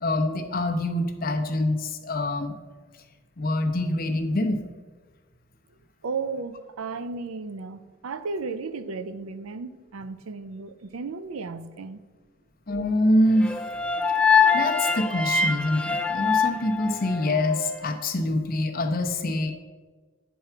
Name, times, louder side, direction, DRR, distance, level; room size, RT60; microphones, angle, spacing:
voice 1, 0.0-2.6 3.4-4.6 12.7-13.5 14.5-19.5, left 1 dB, 45° left, 0.8 m, -25 dB
voice 2, 6.0-12.0, right 4 dB, 85° right, 0.5 m, -34 dB
sound 1, 13.4-17.6, left 5 dB, 5° left, 0.3 m, -23 dB
9.3 x 4.5 x 5.8 m
head